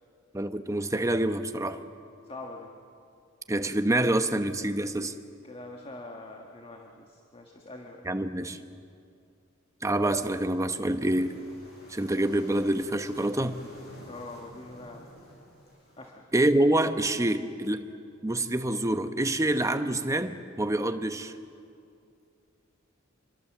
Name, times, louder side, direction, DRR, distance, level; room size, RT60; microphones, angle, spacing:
voice 1, 0.3-1.8 3.5-5.1 8.0-8.6 9.8-11.3 11.9-13.6 16.3-17.8 18.2-21.3, right 1 dB, 15° right, 8 dB, 0.9 m, -26 dB
voice 2, 2.2-2.7 5.5-8.0 14.0-15.1 16.0-16.3, left 2 dB, 30° left, 2 dB, 1.6 m, -44 dB
sound 1, 9.9-16.1, equal, 50° left, 6.9 m, -52 dB
26.5 x 23.0 x 7.4 m, 2.5 s
head